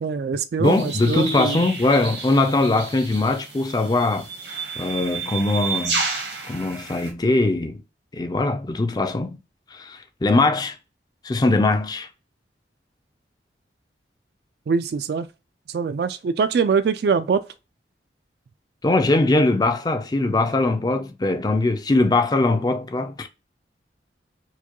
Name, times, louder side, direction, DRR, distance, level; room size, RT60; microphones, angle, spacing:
voice 1, 0.0-1.6 14.7-15.3 15.7-17.4, right 5 dB, 60° right, 0.3 m, -23 dB
voice 2, 0.6-4.3 4.8-6.0 6.5-7.8 8.1-9.4 9.7-10.8 11.2-12.1 18.8-23.3, left 2 dB, 20° left, 0.4 m, -21 dB
sound 1, 0.6-7.1, right 5 dB, 80° right, 1.2 m, -31 dB
4.6 x 2.2 x 2.9 m
head